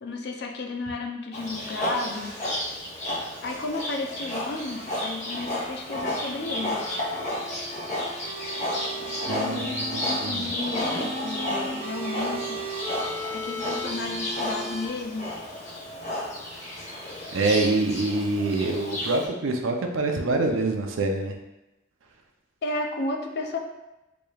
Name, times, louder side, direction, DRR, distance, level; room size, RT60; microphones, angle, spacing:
voice 1, 0.0-2.3 3.4-6.8 9.3-12.6 13.3-15.3 22.6-23.6, left 2 dB, 55° left, 3 dB, 0.4 m, -33 dB
Livestock farm animals working animals, 1.3-19.3, left 1 dB, 35° left, 0.9 m, -32 dB
sound 1, 6.3-10.3 10.8-14.9, right 1 dB, 30° right, 0.5 m, -36 dB
voice 2, 9.3-10.5 17.3-21.3, right 2 dB, 80° right, 3 dB, 0.5 m, -26 dB
4.8 x 3.0 x 2.3 m, 0.98 s
head